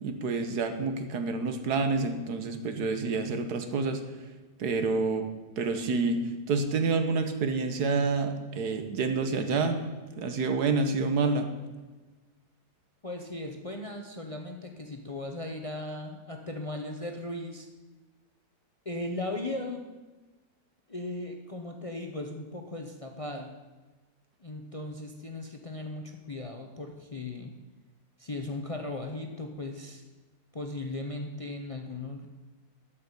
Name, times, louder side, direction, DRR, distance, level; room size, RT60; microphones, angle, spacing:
voice 1, 0.0-4.0 4.6-5.3 5.6-9.8 10.2-11.5, right 4 dB, 80° right, 7 dB, 1.6 m, -28 dB
voice 2, 13.0-17.7 18.8-19.8 20.9-23.5 24.4-27.5 28.2-30.0 30.5-32.3, left 2 dB, 30° left, 3 dB, 0.7 m, -37 dB
12.0 x 5.8 x 8.2 m, 1.2 s
omnidirectional pair, 1.7 m